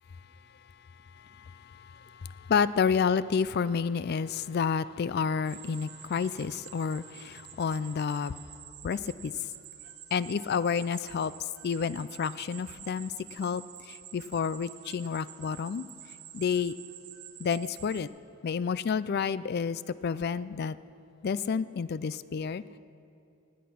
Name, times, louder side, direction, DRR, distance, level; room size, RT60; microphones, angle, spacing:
voice 1, 0.9-8.4 8.8-9.3 10.1-15.9 16.3-16.7 17.4-18.1 18.4-20.8 21.2-22.8, left 6 dB, 45° left, 17 dB, 0.3 m, -30 dB
sound 1, 5.5-18.0, right 11 dB, 75° right, 1.1 m, -49 dB
19.5 x 8.6 x 6.0 m, 2.7 s
head